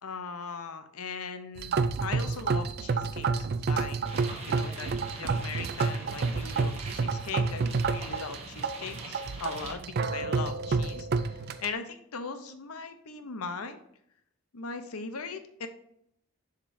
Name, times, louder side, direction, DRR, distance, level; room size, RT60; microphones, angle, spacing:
voice 1, 0.0-13.8 14.5-15.7, left 5 dB, 85° left, 9 dB, 0.7 m, -39 dB
sound 1, 1.6-11.7, right 4 dB, 45° right, 0.3 m, -30 dB
sound 2, 4.1-9.7, right 3 dB, 30° right, 1.2 m, -45 dB
7.1 x 5.2 x 2.7 m, 0.72 s
head